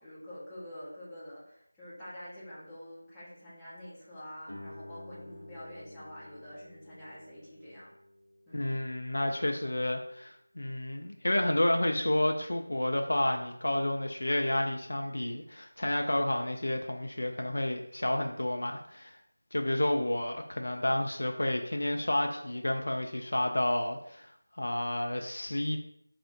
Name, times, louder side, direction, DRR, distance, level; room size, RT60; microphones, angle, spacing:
voice 1, 0.0-7.9 8.5-8.7, left 1 dB, 5° left, -14 dB, 0.8 m, -47 dB
Guitar, 4.5-9.8, left 1 dB, 90° left, 0.7 m, -51 dB
voice 2, 8.5-19.2 19.5-24.3 24.6-25.8, left 1 dB, 65° left, 4 dB, 0.4 m, -30 dB
4.3 x 2.0 x 2.8 m, 0.72 s
figure-of-eight pair, 170°, 0 cm